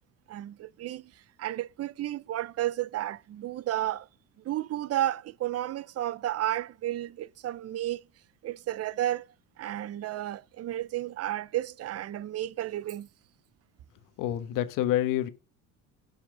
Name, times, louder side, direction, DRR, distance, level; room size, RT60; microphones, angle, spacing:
voice 1, 0.3-1.1 1.4-4.1 4.4-8.0 8.4-9.3 9.6-13.1, right 13 dB, 50° right, 0.6 m, -32 dB
voice 2, 14.2-15.3, left 12 dB, 75° left, 1.4 m, -27 dB
17.0 x 5.7 x 3.8 m
supercardioid pair, 90°, 32 cm